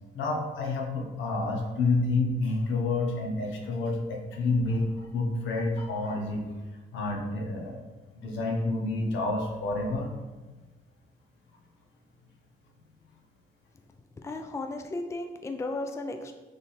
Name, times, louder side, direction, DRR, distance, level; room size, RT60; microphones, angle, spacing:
voice 1, 0.1-6.5 6.9-7.8 8.2-10.1, left 2 dB, 80° left, 1 dB, 0.9 m, -29 dB
voice 2, 14.2-16.3, left 2 dB, 15° left, 6 dB, 0.4 m, -35 dB
3.7 x 3.3 x 4.2 m, 1.3 s
cardioid pair, 90°, 20 cm